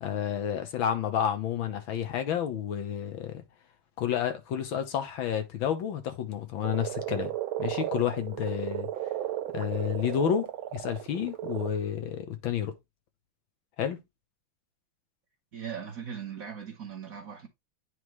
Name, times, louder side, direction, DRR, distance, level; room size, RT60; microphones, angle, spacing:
voice 1, 0.0-3.4 4.0-7.3 7.6-8.9 9.5-12.7 13.8-14.0, left 9 dB, 75° left, 1.7 m, -30 dB
Frog, 6.6-11.7, right 13 dB, 90° right, 1.5 m, -35 dB
voice 2, 15.5-17.5, right 7 dB, 50° right, 1.2 m, -39 dB
9.6 x 3.6 x 3.1 m
omnidirectional pair, 2.3 m